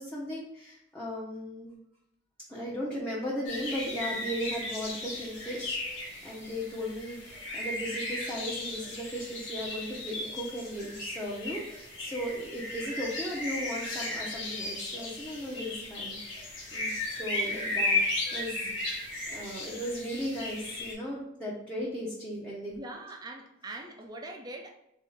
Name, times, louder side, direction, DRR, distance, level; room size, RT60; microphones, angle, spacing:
voice 1, 0.0-1.7 2.5-16.9 17.2-18.0 18.3-19.0 19.3-22.7, equal, 5° left, -7 dB, 0.8 m, -37 dB
sound 1, 3.4-20.9, left 2 dB, 80° left, 1.4 m, -35 dB
voice 2, 22.7-24.7, right 2 dB, 20° right, 3 dB, 0.4 m, -43 dB
3.6 x 3.6 x 3.8 m, 0.80 s
head